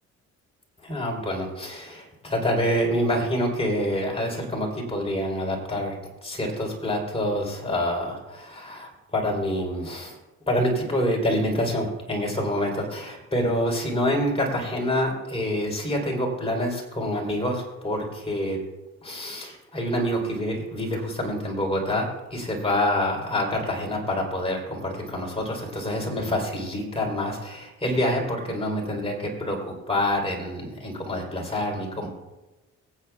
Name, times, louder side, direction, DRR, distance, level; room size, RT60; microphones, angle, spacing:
voice 1, 0.8-5.9 6.2-10.2 10.5-18.6 19.0-32.1, left 1 dB, 20° left, -1 dB, 3.7 m, -27 dB
24.5 x 9.2 x 2.4 m, 1.1 s
cardioid pair, 90°, 30 cm